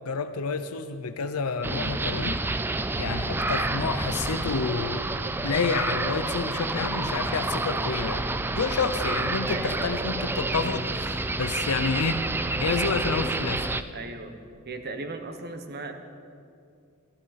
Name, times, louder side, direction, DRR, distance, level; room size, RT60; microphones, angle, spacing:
voice 1, 0.1-2.4 3.0-5.1 5.4-8.3 8.5-12.3 12.6-13.7, left 4 dB, 80° left, 10 dB, 0.6 m, -29 dB
sound 1, 1.6-13.8, right 2 dB, 10° right, 0.3 m, -29 dB
voice 2, 9.5-9.9 13.9-14.4 14.6-15.9, right 3 dB, 50° right, 7 dB, 1.1 m, -37 dB
15.5 x 14.0 x 4.2 m, 2.4 s
head